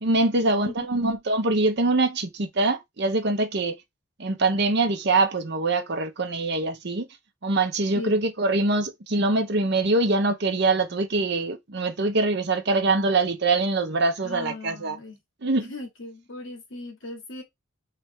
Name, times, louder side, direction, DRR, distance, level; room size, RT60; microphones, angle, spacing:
voice 1, 0.0-3.8 4.2-7.1 7.4-15.0 15.4-15.7, right 2 dB, 50° right, 0.8 m, -24 dB
voice 2, 14.2-15.2 15.6-17.4, left 2 dB, 65° left, 1.7 m, -38 dB
3.4 x 3.3 x 4.6 m
head